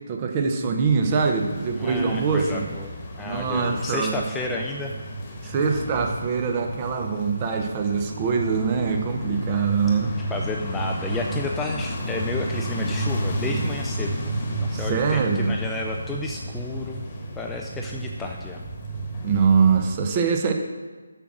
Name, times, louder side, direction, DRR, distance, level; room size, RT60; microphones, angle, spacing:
voice 1, 0.1-2.6 3.2-4.2 5.4-10.1 14.7-15.5 19.2-20.5, right 5 dB, 25° right, 3 dB, 0.8 m, -23 dB
sound 1, 1.0-19.9, right 1 dB, 25° left, 1.3 m, -32 dB
voice 2, 1.8-2.9 3.2-4.9 5.4-5.5 9.6-9.7 10.3-17.0 17.4-18.6, left 2 dB, 5° left, 0 dB, 0.4 m, -32 dB
6.8 x 6.3 x 6.1 m, 1.4 s
figure-of-eight pair, 150°, 0 cm